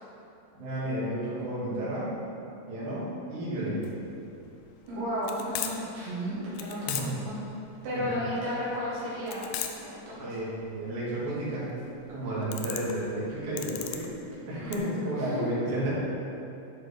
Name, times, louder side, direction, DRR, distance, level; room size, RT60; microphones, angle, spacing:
voice 1, 0.5-2.1 2.7-3.8 6.9-7.3 7.9-8.0 10.2-11.7 12.1-15.9, right 1 dB, 55° right, -9 dB, 3.0 m, -32 dB
sound 1, 3.8-14.8, left 10 dB, 80° left, 2.2 m, -39 dB
voice 2, 4.9-7.4 7.8-9.5 9.8-9.9 10.2-10.4 14.6-15.6, equal, 75° right, -9 dB, 3.3 m, -33 dB
10.5 x 4.4 x 3.4 m, 2.7 s
omnidirectional pair, 4.5 m